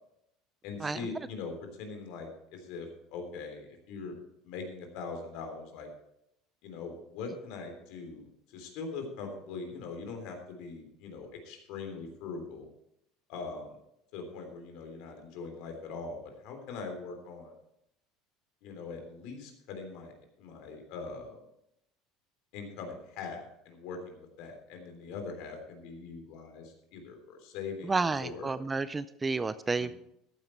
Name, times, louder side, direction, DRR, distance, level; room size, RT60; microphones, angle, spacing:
voice 1, 0.6-4.1 4.4-5.9 6.6-12.6 13.3-13.8 14.1-17.6 18.6-20.1 20.4-21.4 22.5-28.5 29.8-29.9, left 4 dB, 65° left, 4 dB, 3.3 m, -42 dB
voice 2, 27.9-29.9, right 3 dB, 15° right, 15 dB, 0.3 m, -31 dB
14.0 x 9.3 x 4.5 m, 0.78 s
cardioid pair, 160°, 0 cm